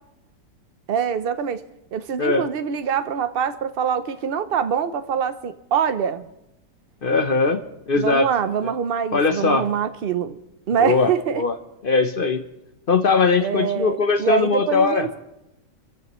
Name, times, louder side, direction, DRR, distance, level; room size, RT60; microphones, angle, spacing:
voice 1, 0.9-1.6 1.9-6.2 8.0-10.4 10.7-11.4 13.4-15.2, right 7 dB, 90° right, 11 dB, 0.5 m, -24 dB
voice 2, 7.0-7.6 7.9-8.3 8.6-8.7 9.1-9.7 10.8-11.1 11.4-11.5 11.8-12.4 12.9-15.1, left 4 dB, 45° left, 7 dB, 0.7 m, -20 dB
29.5 x 14.5 x 3.1 m, 0.88 s
omnidirectional pair, 1.9 m